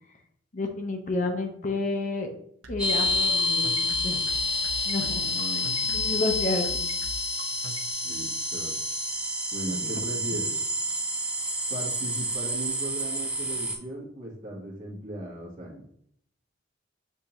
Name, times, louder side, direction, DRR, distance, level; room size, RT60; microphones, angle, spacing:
voice 1, 0.5-2.3 2.7-4.2 4.9-5.2 5.9-6.8 9.7-9.9, left 2 dB, 40° left, 4 dB, 0.6 m, -30 dB
sound 1, 2.6-7.9, right 2 dB, 75° right, 0.7 m, -41 dB
sound 2, 2.8-13.8, left 1 dB, 5° right, 0.6 m, -28 dB
voice 2, 5.2-5.9 8.0-8.8 9.5-10.5 11.7-15.9, right 1 dB, 45° right, -2 dB, 1.2 m, -37 dB
6.6 x 2.7 x 2.9 m, 0.68 s
head